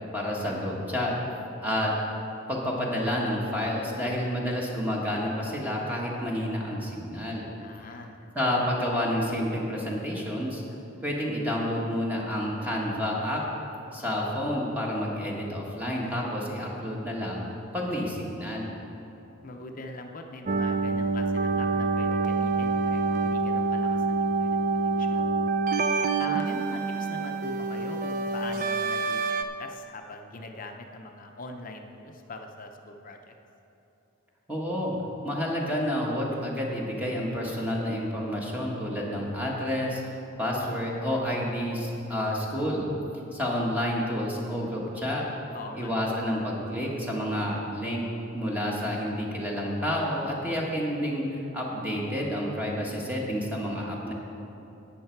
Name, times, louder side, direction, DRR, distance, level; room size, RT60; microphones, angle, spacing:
voice 1, 0.1-1.1 1.6-1.9 2.5-7.5 8.3-10.6 11.0-13.4 13.9-17.4 17.7-18.8 34.5-34.9 35.2-40.0 40.4-42.9 43.3-45.2 45.7-48.1 48.3-54.1, equal, 10° right, -3 dB, 1.4 m, -29 dB
voice 2, 7.6-8.2 19.4-25.3 26.2-33.3 45.5-45.9, left 2 dB, 40° left, 4 dB, 0.6 m, -42 dB
sound 1, 20.5-29.4, right 4 dB, 40° right, 0.4 m, -26 dB
12.0 x 8.8 x 4.6 m, 3.0 s
head